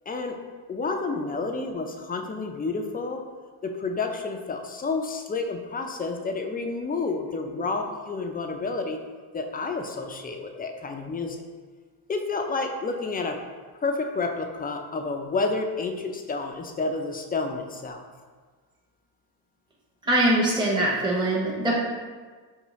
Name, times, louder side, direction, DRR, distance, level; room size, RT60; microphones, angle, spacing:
voice 1, 0.1-0.4 0.7-3.2 3.6-9.0 9.3-11.4 12.1-13.4 13.8-18.0, left 3 dB, 20° left, 4 dB, 0.3 m, -30 dB
voice 2, 20.0-21.8, right 1 dB, 10° right, -5 dB, 0.8 m, -22 dB
5.4 x 3.1 x 3.0 m, 1.5 s
cardioid pair, 110°, 45 cm